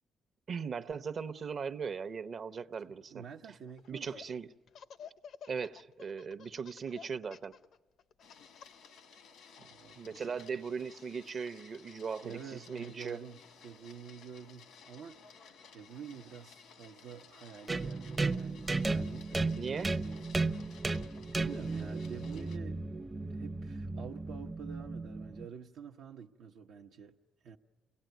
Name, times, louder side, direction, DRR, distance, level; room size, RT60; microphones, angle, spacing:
voice 1, 0.5-3.2 3.9-4.5 5.5-7.5 9.9-13.2 19.6-19.9, right 6 dB, 50° right, 0.8 m, -39 dB
voice 2, 2.9-4.2 9.6-10.2 12.2-20.2 21.0-22.8 23.3-27.1 27.4-27.6, right 7 dB, 80° right, 0.8 m, -48 dB
Laughter, 3.7-4.3 4.7-8.9, left 7 dB, 70° left, 0.7 m, -51 dB
Printer, 8.2-22.6, left 6 dB, 85° left, 1.3 m, -57 dB
sound 1, 17.7-25.5, right 3 dB, 25° right, 0.6 m, -35 dB
28.0 x 18.0 x 9.2 m
cardioid pair, 90°, 0 cm